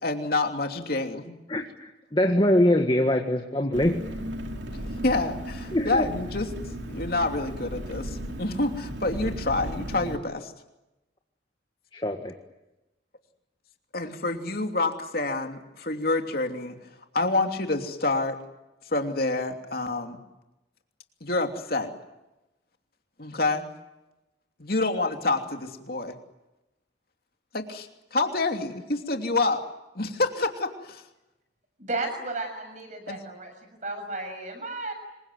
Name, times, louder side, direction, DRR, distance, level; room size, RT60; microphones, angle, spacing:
voice 1, 0.0-1.3 4.7-6.5 6.9-10.5 13.9-16.8 17.1-18.4 18.9-20.2 21.2-21.9 23.2-23.7 24.6-26.1 27.5-29.6 29.9-31.0 33.1-33.2, left 2 dB, 50° left, 4 dB, 3.0 m, -28 dB
voice 2, 1.5-4.0 5.7-6.1 11.9-12.3, left 1 dB, 25° left, 4 dB, 1.8 m, -23 dB
Engine, 3.7-10.2, right 1 dB, 75° right, 2.7 m, -35 dB
voice 3, 31.8-33.5 33.8-34.9, right 2 dB, 40° right, 7 dB, 6.8 m, -33 dB
26.5 x 23.5 x 9.4 m, 0.98 s
head